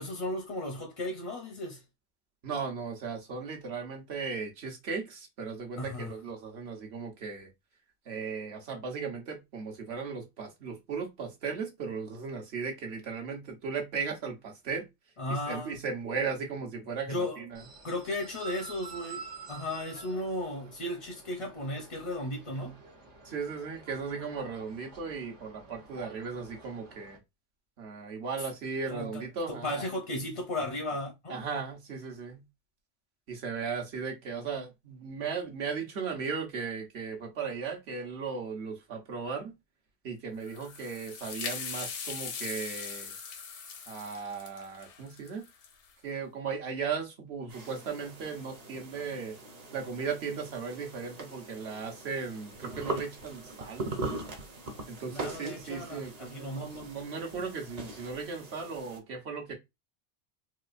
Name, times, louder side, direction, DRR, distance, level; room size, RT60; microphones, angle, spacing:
voice 1, 0.0-1.8 5.8-6.1 15.2-15.8 17.1-17.4 17.8-22.8 28.9-31.4 55.1-56.9, left 1 dB, 40° left, 0.5 m, -35 dB
voice 2, 2.4-7.5 8.1-14.9 15.5-17.6 23.2-27.2 27.8-29.8 31.3-32.4 33.3-39.5 40.0-43.1 43.9-45.5 46.0-49.4 49.7-53.9 54.9-59.5, right 5 dB, 65° right, 1.2 m, -36 dB
sound 1, 17.5-27.2, right 5 dB, 80° right, 1.4 m, -49 dB
sound 2, 40.4-45.9, left 6 dB, 80° left, 1.0 m, -40 dB
sound 3, 47.5-59.0, right 2 dB, 40° right, 0.8 m, -41 dB
4.1 x 2.4 x 2.5 m
omnidirectional pair, 1.2 m